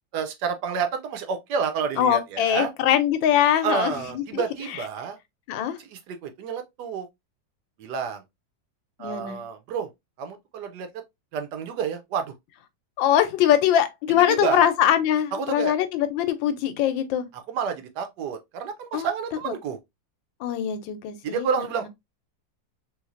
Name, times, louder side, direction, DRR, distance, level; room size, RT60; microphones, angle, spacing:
voice 1, 0.1-2.7 3.6-5.2 5.8-7.1 7.8-8.2 9.0-9.9 10.2-10.9 11.3-12.3 14.1-14.7 15.3-15.7 17.3-19.8 21.2-21.9, right 6 dB, 70° right, 1.1 m, -29 dB
voice 2, 2.0-4.4 5.5-5.8 9.0-9.4 13.0-17.3 18.9-19.1 20.4-21.5, left 10 dB, 85° left, 1.4 m, -22 dB
3.2 x 3.2 x 2.4 m
omnidirectional pair, 2.0 m